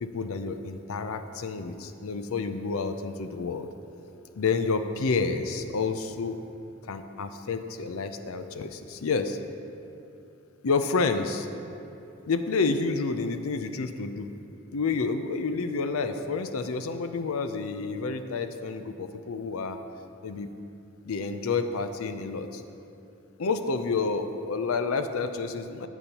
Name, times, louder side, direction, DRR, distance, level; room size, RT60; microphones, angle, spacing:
voice 1, 0.0-3.7 4.3-6.4 6.9-9.4 10.6-11.5 12.3-14.3 14.7-19.8 20.2-20.5 21.0-22.6 23.4-25.9, left 4 dB, 70° left, 9 dB, 0.5 m, -29 dB
12.0 x 8.1 x 2.9 m, 2.9 s
head